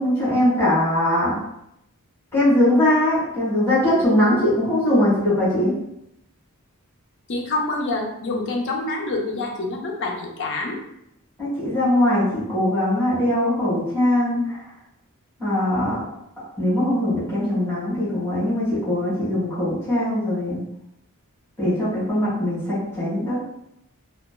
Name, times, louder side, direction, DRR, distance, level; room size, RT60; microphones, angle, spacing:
voice 1, 0.0-1.3 2.3-5.7 11.4-14.6 15.4-16.0 16.6-20.6 21.6-23.4, left 1 dB, 10° left, -11 dB, 1.2 m, -21 dB
voice 2, 7.3-10.8, left 2 dB, 55° left, 0 dB, 0.5 m, -26 dB
2.9 x 2.2 x 2.2 m, 0.78 s
head